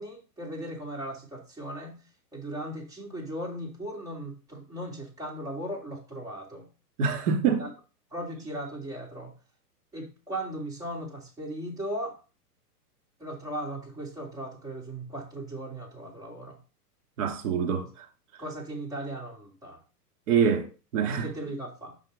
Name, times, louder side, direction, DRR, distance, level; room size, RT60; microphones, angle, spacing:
voice 1, 0.0-2.0 2.3-6.7 7.6-7.7 8.1-9.4 9.9-12.2 13.2-16.6 18.4-19.8 21.2-22.0, right 1 dB, 5° right, 2.2 m, -37 dB
voice 2, 7.0-7.7 17.2-18.1 20.3-21.3, right 6 dB, 50° right, 2.5 m, -25 dB
6.1 x 5.3 x 3.9 m
hypercardioid pair, 145°, 47 cm